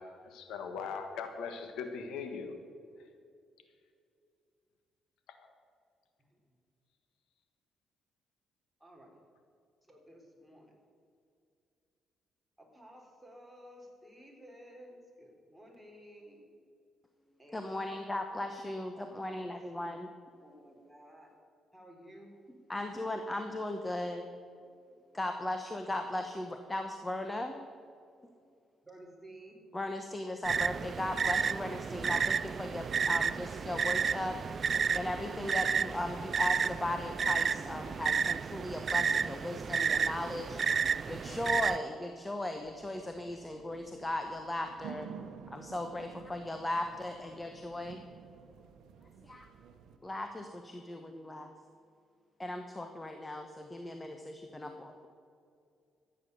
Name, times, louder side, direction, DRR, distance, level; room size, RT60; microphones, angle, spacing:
voice 1, 0.3-2.5, left 5 dB, 85° left, 6 dB, 1.4 m, -39 dB
voice 2, 6.2-6.6 8.8-9.2 9.9-10.8 12.6-16.5 17.4-17.6 18.9-20.0 20.4-21.3 21.7-22.4 25.9-26.0 28.8-29.6 31.9-32.2, equal, 5° right, -1 dB, 3.6 m, -54 dB
voice 3, 17.5-20.1 22.7-24.3 25.1-27.6 29.7-34.3 34.9-40.6 41.1-45.1 45.5-48.0 49.2-49.5 50.0-51.5 52.4-55.1, left 1 dB, 15° left, 5 dB, 1.1 m, -37 dB
sound 1, 30.4-41.8, right 6 dB, 45° right, 0.4 m, -31 dB
sound 2, 42.6-50.0, right 7 dB, 80° right, 0.9 m, -51 dB
14.0 x 9.0 x 6.8 m, 2.4 s
cardioid pair, 90°, 0 cm